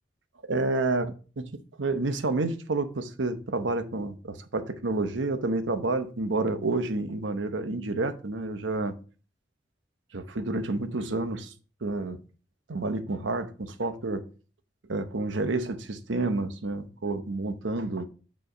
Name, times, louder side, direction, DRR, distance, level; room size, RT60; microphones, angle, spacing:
voice 1, 0.4-9.0 10.1-11.5 11.8-12.2 12.7-14.3 14.9-18.1, right 2 dB, 90° right, 0.8 m, -29 dB
9.2 x 3.2 x 5.0 m
head